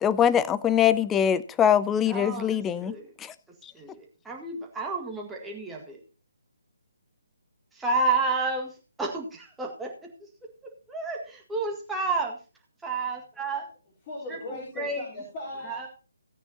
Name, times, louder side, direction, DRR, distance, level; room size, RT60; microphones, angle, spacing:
voice 1, 0.0-3.3 3.6-3.7, left 9 dB, 10° left, 0.4 m, -23 dB
voice 2, 2.1-3.1 3.7-6.0 7.7-9.9 10.2-10.3 10.9-12.4 12.8-13.7 14.8-15.0 15.7-15.9, right 3 dB, 5° right, 1.8 m, -30 dB
voice 3, 14.1-15.9, left 1 dB, 25° left, 3.9 m, -38 dB
16.5 x 8.9 x 2.8 m
figure-of-eight pair, 145°, 0 cm